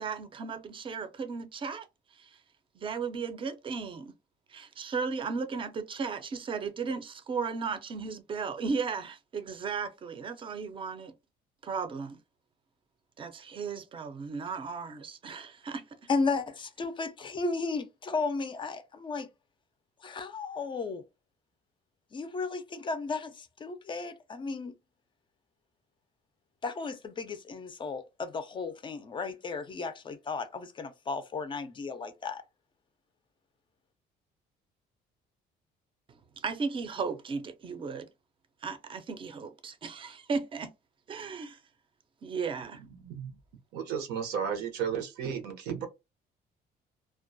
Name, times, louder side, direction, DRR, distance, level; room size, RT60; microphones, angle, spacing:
voice 1, 0.0-1.9 2.2-2.3 2.8-4.1 4.5-11.1 11.6-12.2 13.2-15.8 36.4-38.1 38.6-40.7 41.1-41.6 42.2-42.8, right 5 dB, 30° right, 0.5 m, -35 dB
voice 2, 16.1-19.3 20.0-21.0 22.1-24.7 26.6-32.4, left 4 dB, 30° left, 0.4 m, -34 dB
voice 3, 43.0-43.3 43.7-45.8, right 7 dB, 85° right, 0.7 m, -33 dB
2.2 x 2.1 x 2.6 m
cardioid pair, 110°, 17 cm